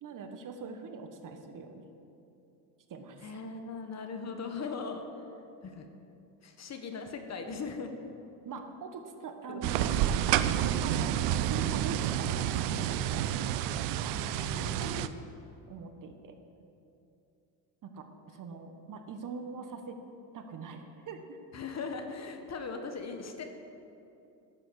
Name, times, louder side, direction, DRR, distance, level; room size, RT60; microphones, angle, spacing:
voice 1, 0.0-1.8 2.9-3.4 8.4-9.9 10.6-11.1 11.4-13.4 15.7-16.4 17.8-18.1 18.3-20.0 20.3-21.4, right 5 dB, 40° right, 6 dB, 1.4 m, -43 dB
voice 2, 3.2-5.2 5.6-5.9 6.4-7.9 9.5-9.6 9.9-10.0 14.1-15.2 21.5-23.4, left 4 dB, 30° left, 5 dB, 1.4 m, -39 dB
sound 1, 9.6-15.1, right 11 dB, 55° right, 0.7 m, -29 dB
12.0 x 8.1 x 6.4 m, 2.7 s
hypercardioid pair, 80°, 50 cm